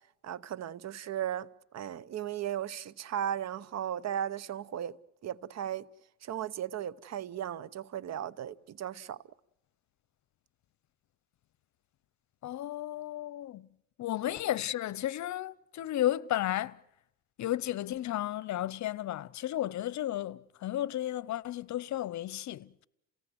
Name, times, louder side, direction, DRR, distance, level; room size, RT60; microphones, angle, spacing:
voice 1, 0.2-5.0 5.2-5.9 6.2-9.2 14.3-14.4, right 10 dB, 60° right, 0.9 m, -36 dB
voice 2, 12.4-13.7 14.0-16.8 17.4-22.8, left 13 dB, 65° left, 0.8 m, -33 dB
28.5 x 18.0 x 7.9 m
cardioid pair, 90°, 30 cm